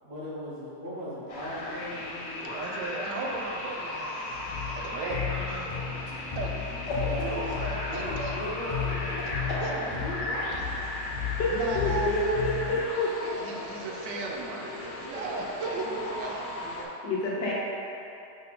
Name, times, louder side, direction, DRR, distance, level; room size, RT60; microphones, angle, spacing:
voice 1, 0.0-2.3 7.0-7.2 7.8-10.8, equal, 40° right, -8 dB, 1.6 m, -38 dB
sound 1, 1.3-16.8, left 2 dB, 60° left, 1.2 m, -36 dB
voice 2, 2.4-4.2 4.7-5.7 6.3-6.6 7.2-8.5 9.6-9.8 11.5-12.8 13.5-13.6 15.0-16.9, right 3 dB, 90° right, 0 dB, 1.4 m, -36 dB
sound 2, 4.3-12.8, left 8 dB, 30° left, 0.8 m, -35 dB
voice 3, 4.9-5.4 13.2-15.3 16.2-16.4, right 3 dB, 70° right, 0 dB, 1.1 m, -39 dB
voice 4, 11.4-13.4 17.0-17.5, left 2 dB, 75° left, -5 dB, 1.6 m, -28 dB
5.4 x 5.3 x 4.2 m, 2.9 s
omnidirectional pair, 1.8 m